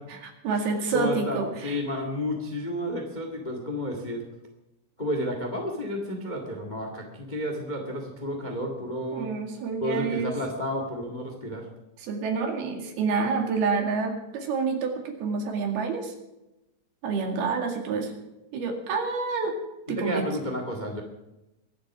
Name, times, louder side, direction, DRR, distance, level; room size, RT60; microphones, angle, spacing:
voice 1, 0.2-1.8 9.1-10.3 12.0-16.1 17.0-18.1 18.5-19.6 19.9-20.2, right 4 dB, 75° right, 3 dB, 4.1 m, -28 dB
voice 2, 0.9-4.2 5.0-9.3 9.8-11.6 19.9-21.0, left 1 dB, 25° left, 3 dB, 0.9 m, -31 dB
23.0 x 7.9 x 6.1 m, 0.95 s
omnidirectional pair, 4.5 m